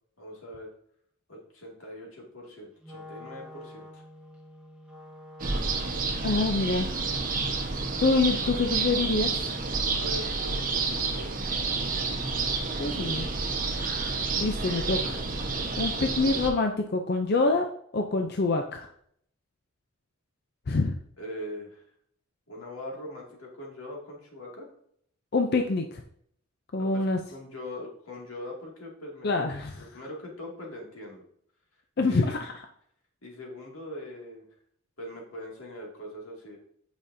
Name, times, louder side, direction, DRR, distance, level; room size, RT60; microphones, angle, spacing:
voice 1, 0.2-0.7 1.3-4.0 9.9-11.3 21.2-21.8 22.5-24.7 26.8-29.5 29.8-31.2 32.0-32.4 33.2-34.5 35.0-36.6, left 1 dB, 90° left, -1 dB, 2.3 m, -41 dB
Wind instrument woodwind instrument, 2.8-11.0, left 1 dB, 5° right, 1.0 m, -49 dB
sound 1, 5.4-16.5, right 4 dB, 40° right, 1.1 m, -29 dB
voice 2, 6.2-7.0 8.0-9.4 12.8-13.3 14.4-15.2 15.8-17.7 17.9-18.9 20.7-21.0 25.3-26.0 26.7-27.2 29.2-29.9 32.0-32.5, left 3 dB, 50° left, 5 dB, 0.5 m, -26 dB
8.6 x 5.1 x 2.7 m, 0.67 s
head